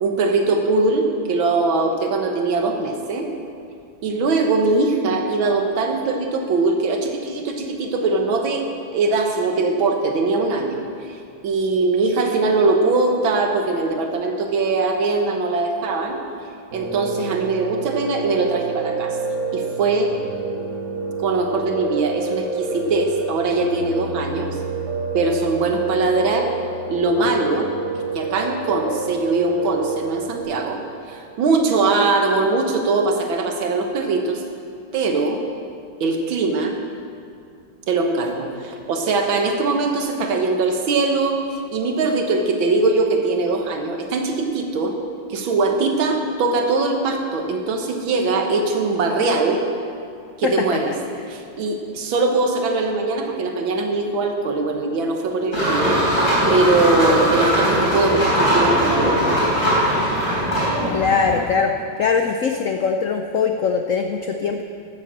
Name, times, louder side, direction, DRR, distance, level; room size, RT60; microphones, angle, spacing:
voice 1, 0.0-3.3 4.0-8.6 8.9-11.2 11.4-16.2 16.7-19.2 19.5-20.1 21.2-24.6 25.1-26.5 26.9-27.7 28.1-30.8 31.1-34.4 34.9-35.4 36.0-36.8 37.9-41.4 41.7-44.9 45.3-49.6 50.4-50.9 51.3-56.0 56.5-59.2, right 3 dB, 90° right, 4 dB, 2.0 m, -21 dB
Piano, 16.7-30.4, right 4 dB, 55° right, 2.2 m, -28 dB
voice 2, 50.4-50.8 60.9-61.7 62.0-64.6, left 5 dB, 75° left, 5 dB, 0.7 m, -21 dB
sound 1, 55.5-61.4, equal, 40° left, 4.1 m, -20 dB
12.5 x 7.4 x 7.5 m, 2.5 s
omnidirectional pair, 2.1 m